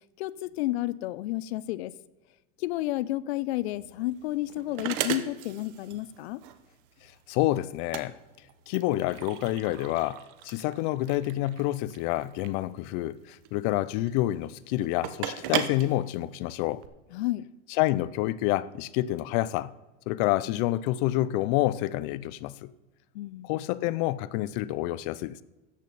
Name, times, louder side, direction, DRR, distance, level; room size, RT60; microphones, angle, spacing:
voice 1, 0.2-1.9 2.6-6.4 17.1-17.5 23.1-23.5, left 16 dB, 85° left, 0.6 m, -31 dB
sound 1, 3.6-16.9, right 10 dB, 55° right, 1.0 m, -37 dB
voice 2, 7.3-8.2 8.7-16.8 17.8-19.7 20.1-22.7 23.4-25.4, left 16 dB, 45° left, 0.5 m, -28 dB
13.5 x 8.4 x 4.1 m
supercardioid pair, 165°, 31 cm